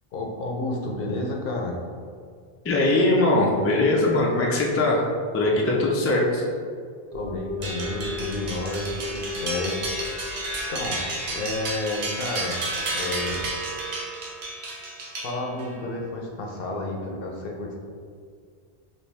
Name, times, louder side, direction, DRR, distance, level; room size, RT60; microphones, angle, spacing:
voice 1, 0.1-1.8 7.1-9.9 10.7-11.0 11.3-12.6 12.9-13.4 15.2-17.7, left 2 dB, 65° left, 0 dB, 0.8 m, -31 dB
voice 2, 2.6-5.0 5.3-6.4, left 2 dB, 25° left, -3 dB, 0.3 m, -21 dB
sound 1, 7.1-13.5, left 2 dB, 40° right, 1.0 m, -38 dB
sound 2, 7.6-15.8, right 2 dB, 85° right, 1.0 m, -32 dB
4.3 x 2.7 x 3.3 m, 2.1 s
omnidirectional pair, 1.0 m